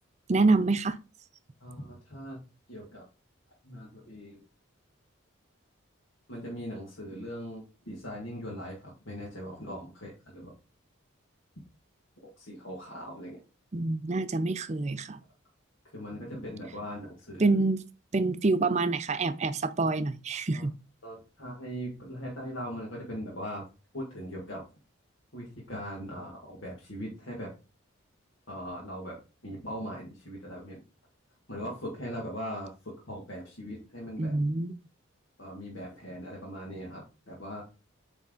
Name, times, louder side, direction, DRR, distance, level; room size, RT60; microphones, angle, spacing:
voice 1, 0.3-1.0 13.7-15.2 17.4-17.8 18.1-20.7 34.2-34.7, right 3 dB, 35° right, 0.5 m, -26 dB
voice 2, 1.6-2.4 2.7-3.1 3.6-4.4 6.3-10.5 12.2-13.4 15.9-17.4 20.5-20.7 21.0-23.6 23.9-24.6 25.3-27.5 28.5-29.2 29.4-30.8 31.5-34.4 35.4-37.6, equal, 65° left, 1.9 m, -40 dB
8.4 x 3.5 x 3.8 m
head